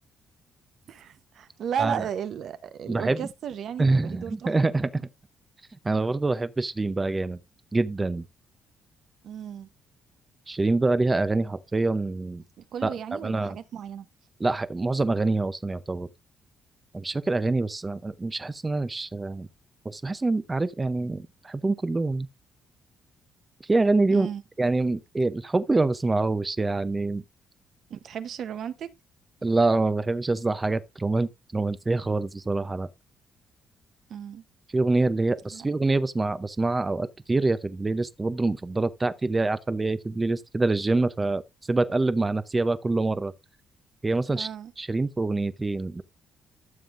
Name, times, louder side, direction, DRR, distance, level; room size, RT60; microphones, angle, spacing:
voice 1, 0.9-4.7 9.2-9.7 12.6-14.1 24.1-24.4 27.9-28.9 34.1-34.4 35.5-35.6 44.3-44.7, right 8 dB, 60° right, 0.8 m, -34 dB
voice 2, 2.9-3.3 3.8-4.9 5.8-7.4 7.7-8.2 10.5-12.4 12.8-13.6 14.4-16.1 16.9-19.5 19.8-22.3 23.7-24.3 24.6-27.2 29.4-32.9 34.7-41.4 41.7-43.3 44.0-44.5 44.8-46.0, right 3 dB, 20° right, 0.6 m, -25 dB
13.0 x 7.1 x 2.5 m
cardioid pair, 120°, 0 cm